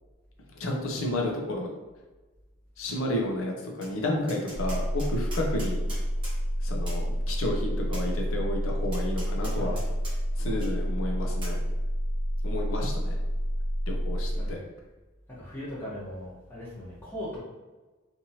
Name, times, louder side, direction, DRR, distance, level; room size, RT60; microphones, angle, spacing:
voice 1, 0.6-1.7 2.8-5.8 6.6-9.8 10.4-11.6 12.4-13.2 13.9-14.6, left 1 dB, 90° left, 0 dB, 0.6 m, -31 dB
Tap, 3.8-3.9 4.3-6.4 6.9-7.0 7.9-8.1 8.9-10.1 10.6-10.7 11.4-11.6, right 1 dB, 25° right, 0.9 m, -43 dB
sound 1, 4.5-14.5, equal, 90° right, 0.4 m, -29 dB
voice 2, 15.3-17.4, equal, 10° left, -9 dB, 0.9 m, -39 dB
2.9 x 2.5 x 2.8 m, 1.2 s
head